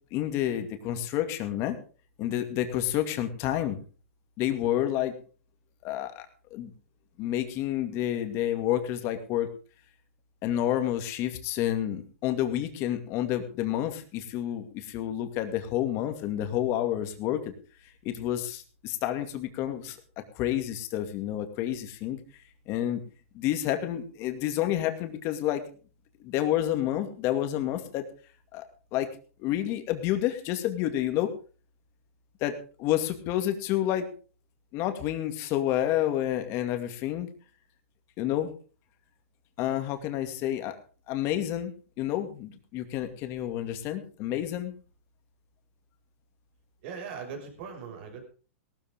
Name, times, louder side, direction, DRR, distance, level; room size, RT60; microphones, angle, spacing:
voice 1, 0.1-1.8 2.2-3.8 4.4-5.1 5.8-6.3 6.5-6.7 7.2-9.5 10.4-17.4 18.0-22.2 22.7-23.0 23.3-25.6 26.2-28.0 28.5-28.6 28.9-29.1 29.4-31.3 32.4-34.1 34.7-37.3 38.2-38.5 39.6-40.8 41.1-41.7 42.0-44.7, left 12 dB, 35° left, 7 dB, 2.3 m, -29 dB
voice 2, 46.8-48.2, right 6 dB, 50° right, 4 dB, 6.1 m, -40 dB
18.0 x 13.0 x 3.7 m, 0.38 s
hypercardioid pair, 145°, 8 cm